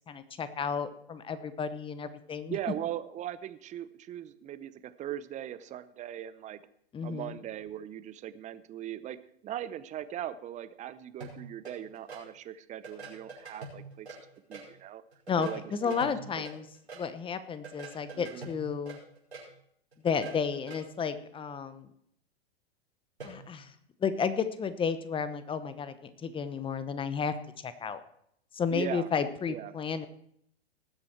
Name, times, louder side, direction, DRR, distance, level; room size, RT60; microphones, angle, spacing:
voice 1, 0.1-2.6 6.9-7.4 15.3-16.6 17.0-19.0 20.0-21.9 23.2-23.7 24.0-27.3 27.6-28.0 28.5-30.1, left 6 dB, 15° left, 12 dB, 0.9 m, -32 dB
voice 2, 2.5-6.6 7.0-9.2 9.4-14.1 14.5-15.0 15.4-16.4 18.1-18.5 28.7-29.1 29.5-29.7, right 11 dB, 25° right, 14 dB, 0.7 m, -39 dB
sound 1, 11.2-12.2 12.8-14.7 15.1-17.0 17.6-19.5 19.9-20.8 23.2-23.4, right 3 dB, 90° right, 5.0 m, -45 dB
19.0 x 7.7 x 4.5 m, 0.70 s
hypercardioid pair, 105°, 32 cm